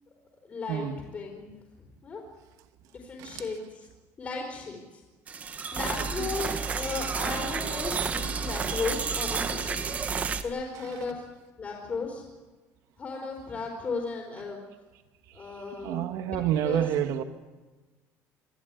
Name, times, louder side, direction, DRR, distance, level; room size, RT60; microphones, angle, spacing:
voice 1, 0.4-0.9 1.1-2.2 2.9-3.9 4.2-5.0 5.3-11.3 11.6-12.2 13.0-14.6 15.3-16.1 16.6-16.8, left 4 dB, 25° left, 4.2 m, -36 dB
sound 1, 5.3-10.4, right 5 dB, 25° right, 1.3 m, -31 dB
voice 2, 5.9-6.3 15.4-15.5 15.8-17.2, right 10 dB, 65° right, 2.1 m, -29 dB
26.0 x 16.0 x 9.7 m
cardioid pair, 175°, 6 cm